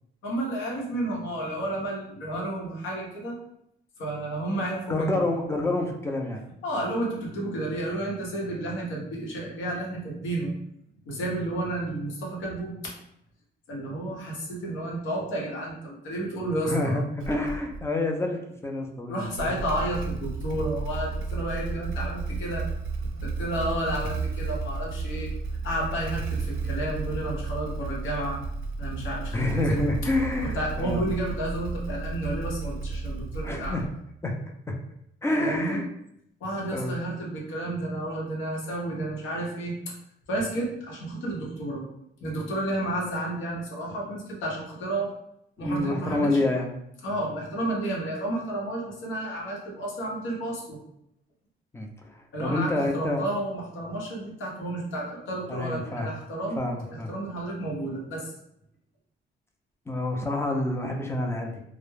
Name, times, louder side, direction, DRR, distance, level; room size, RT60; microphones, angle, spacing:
voice 1, 0.2-3.4 4.0-5.3 6.6-10.5 11.0-12.9 13.7-17.0 19.1-22.6 23.2-25.3 25.6-28.4 28.8-30.0 30.4-33.8 35.4-35.8 36.4-39.9 40.3-41.8 42.2-45.1 45.6-46.4 47.0-50.8 52.3-58.3, right 1 dB, 80° left, -2 dB, 0.8 m, -31 dB
voice 2, 4.9-6.4 16.6-19.6 29.3-31.1 33.4-33.9 34.2-34.4 34.7-34.8 35.2-35.9 36.7-37.1 45.6-46.8 51.7-53.2 55.5-56.1 56.6-57.1 59.9-61.6, left 2 dB, 15° left, 2 dB, 0.4 m, -28 dB
Motorcycle / Engine starting, 17.2-17.9 19.2-34.1, right 3 dB, 80° right, 0.4 m, -33 dB
2.2 x 2.0 x 3.2 m, 0.75 s
cardioid pair, 90°, 20 cm